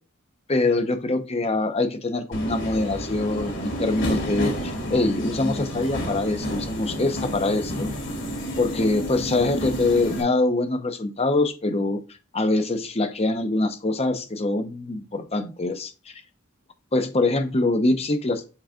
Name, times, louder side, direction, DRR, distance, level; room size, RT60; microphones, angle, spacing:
voice 1, 0.5-7.9 8.6-12.0 12.3-15.9 16.9-18.4, left 2 dB, 30° left, 9 dB, 0.8 m, -24 dB
Subway metro underground, 2.3-10.2, equal, 60° left, 2.1 m, -30 dB
7.5 x 3.9 x 3.7 m, 0.32 s
head